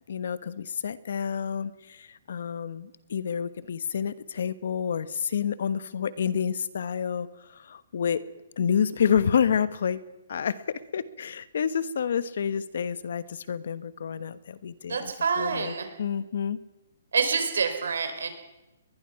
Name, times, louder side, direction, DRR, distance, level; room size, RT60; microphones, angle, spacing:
voice 1, 0.1-7.3 7.5-8.2 8.6-10.0 10.3-15.7 16.0-16.6, left 7 dB, 60° left, 15 dB, 1.2 m, -29 dB
voice 2, 14.8-15.9 17.1-18.3, right 5 dB, 90° right, 7 dB, 4.9 m, -27 dB
22.0 x 21.0 x 5.9 m, 0.99 s
hypercardioid pair, 170°, 0 cm